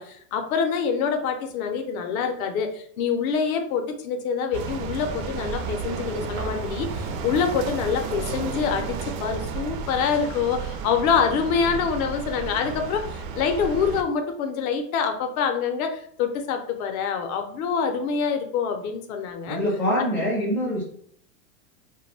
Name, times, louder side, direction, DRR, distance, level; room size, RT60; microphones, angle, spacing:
voice 1, 0.0-19.6 20.0-20.1, left 6 dB, 65° left, 6 dB, 0.6 m, -26 dB
sound 1, 4.5-14.0, right 5 dB, 60° right, 0.5 m, -32 dB
voice 2, 19.5-20.8, equal, 5° left, -7 dB, 0.3 m, -24 dB
2.2 x 2.1 x 3.2 m, 0.63 s
supercardioid pair, 145°, 46 cm